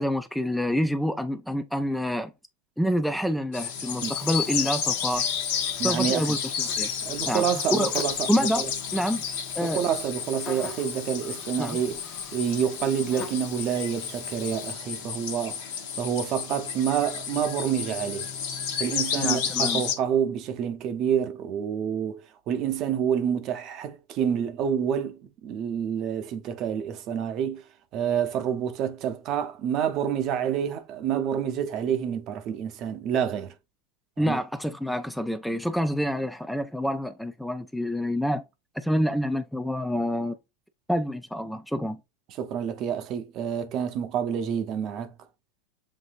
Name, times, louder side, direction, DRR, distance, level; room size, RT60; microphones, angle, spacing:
voice 1, 0.0-2.3 2.8-5.3 5.8-6.9 7.3-7.4 7.7-7.9 8.3-8.6 8.9-9.2 9.6-9.8 11.6-11.8 19.2-19.8 34.2-38.4 38.8-40.4 40.9-42.0, equal, ahead, 0.4 m, -27 dB
sound 1, 3.5-20.0, left 7 dB, 70° left, 1.2 m, -31 dB
Buzz, 4.0-14.7, left 5 dB, 35° left, 0.9 m, -46 dB
voice 2, 5.8-6.4 7.0-8.7 9.6-12.0 12.3-15.7 16.0-18.3 18.8-27.6 27.9-33.5 34.2-34.4 42.4-45.1, right 8 dB, 45° right, 0.7 m, -28 dB
7.3 x 2.6 x 2.6 m
hypercardioid pair, 110°, 0 cm